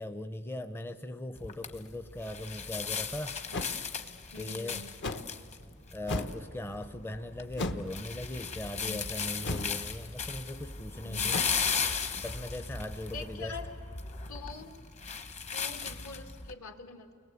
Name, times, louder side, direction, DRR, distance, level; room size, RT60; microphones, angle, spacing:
voice 1, 0.0-3.4 4.3-4.8 5.9-11.4 12.2-13.6, left 1 dB, 10° left, 9 dB, 0.6 m, -39 dB
sound 1, 1.4-16.5, left 5 dB, 30° left, 1.1 m, -37 dB
sound 2, 3.5-3.7 5.0-5.3 6.0-6.4 7.5-7.9 9.4-9.8 11.3-11.4, left 2 dB, 55° left, 1.1 m, -34 dB
voice 2, 4.3-5.0 8.8-9.1 11.0-11.5 13.1-13.7 14.3-14.8 15.5-17.1, left 3 dB, 70° left, 5 dB, 2.3 m, -44 dB
29.5 x 21.5 x 8.3 m, 2.4 s
head